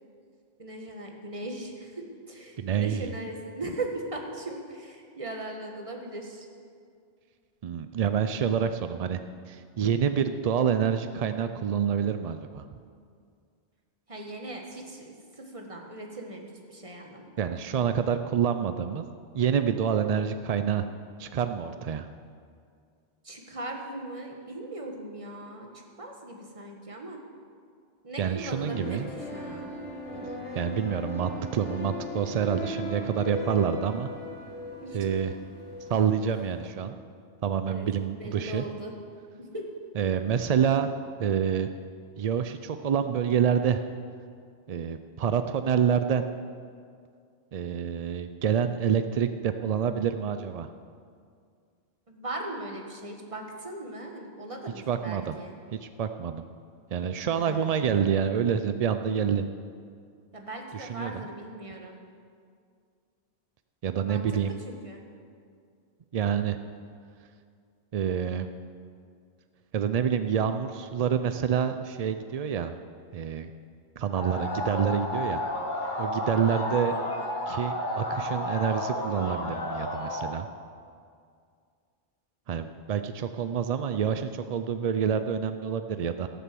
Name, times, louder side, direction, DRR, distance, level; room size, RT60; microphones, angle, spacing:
voice 1, 0.6-6.5 14.1-17.6 23.2-27.2 28.0-29.7 30.1-30.3 34.8-35.0 37.6-38.9 39.4-39.7 52.1-55.5 57.2-58.0 60.3-62.0 64.0-64.4 64.6-65.0 76.5-76.8, right 2 dB, 30° right, 2 dB, 1.6 m, -39 dB
voice 2, 2.6-3.1 7.6-9.2 9.5-12.6 17.4-19.1 19.3-20.8 21.2-22.1 28.2-29.1 30.5-34.1 34.9-35.3 35.9-36.9 37.4-38.6 40.0-40.9 41.2-41.7 42.2-43.8 44.7-46.2 47.5-50.7 54.9-55.3 55.7-56.4 56.9-59.4 60.8-61.2 63.8-64.5 66.1-66.6 67.9-68.5 69.7-72.8 73.1-73.5 74.0-75.4 76.0-76.9 77.5-80.5 82.5-86.3, right 8 dB, 60° right, 9 dB, 0.4 m, -27 dB
sound 1, 28.7-36.7, left 1 dB, 85° left, 1.9 m, -38 dB
sound 2, 74.1-80.3, left 1 dB, 45° left, 1.6 m, -32 dB
17.0 x 6.8 x 7.6 m, 2.2 s
omnidirectional pair, 1.2 m